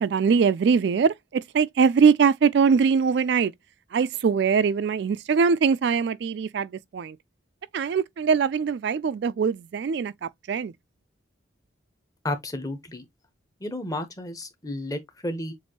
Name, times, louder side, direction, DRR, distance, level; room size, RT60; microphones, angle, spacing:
voice 1, 0.0-3.5 3.9-7.2 7.7-10.7, right 6 dB, 60° right, 0.3 m, -22 dB
voice 2, 12.2-13.1 13.6-15.5, left 1 dB, 20° left, 0.9 m, -32 dB
7.1 x 2.6 x 2.9 m
head